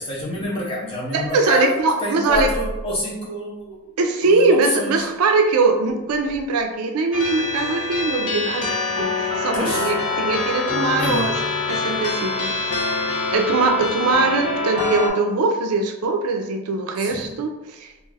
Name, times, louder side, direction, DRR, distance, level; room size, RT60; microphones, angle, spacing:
voice 1, 0.0-3.9 4.2-5.1 9.5-9.9 11.0-11.4 17.0-17.4, equal, 25° left, -4 dB, 0.6 m, -27 dB
voice 2, 1.1-2.5 4.0-11.3 11.7-13.0 13.3-17.9, right 3 dB, 85° right, 5 dB, 0.4 m, -21 dB
sound 1, 7.1-15.1, left 3 dB, 80° left, 0.6 m, -25 dB
2.4 x 2.3 x 3.3 m, 1.0 s
head